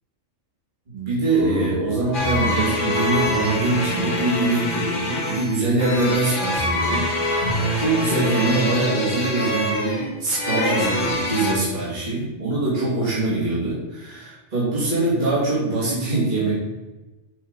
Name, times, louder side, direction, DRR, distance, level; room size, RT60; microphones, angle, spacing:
voice 1, 0.9-16.5, right 2 dB, 35° right, -9 dB, 2.5 m, -23 dB
sound 1, 1.0-4.7, right 1 dB, 85° right, 2.4 m, -34 dB
sound 2, 2.1-11.5, left 1 dB, 40° left, 1.5 m, -24 dB
7.0 x 4.5 x 5.2 m, 1.1 s
omnidirectional pair, 1.4 m